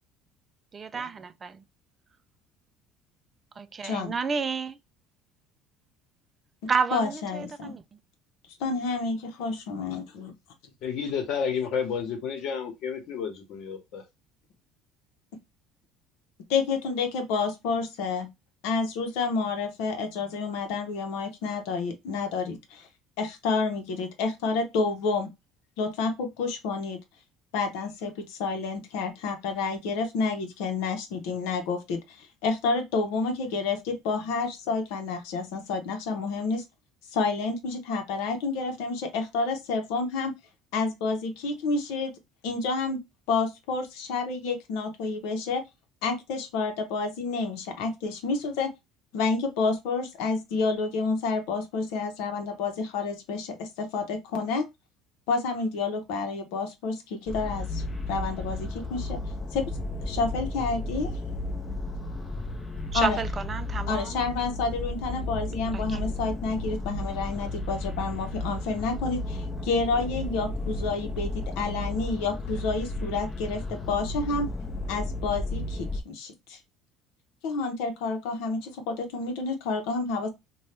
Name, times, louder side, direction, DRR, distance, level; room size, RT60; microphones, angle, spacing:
voice 1, 0.7-1.5 3.6-4.8 6.7-7.8 62.9-64.2 65.7-66.0, right 5 dB, 30° right, 0.3 m, -30 dB
voice 2, 3.8-4.1 6.9-7.8 8.6-10.3 16.5-18.3 18.6-22.9 23.2-25.3 25.8-27.0 27.5-36.6 37.1-40.3 40.7-42.1 42.4-43.0 43.3-45.6 46.0-48.7 49.1-54.7 55.3-57.8 58.1-59.2 59.5-59.7 60.0-61.1 62.9-63.2 63.9-74.5 74.9-76.6 77.4-80.3, left 4 dB, 85° left, 0.8 m, -29 dB
voice 3, 10.8-14.0, left 6 dB, 65° left, 1.1 m, -31 dB
sound 1, 57.3-76.0, left 2 dB, 20° left, 0.7 m, -33 dB
2.7 x 2.2 x 3.2 m
cardioid pair, 110°, 0 cm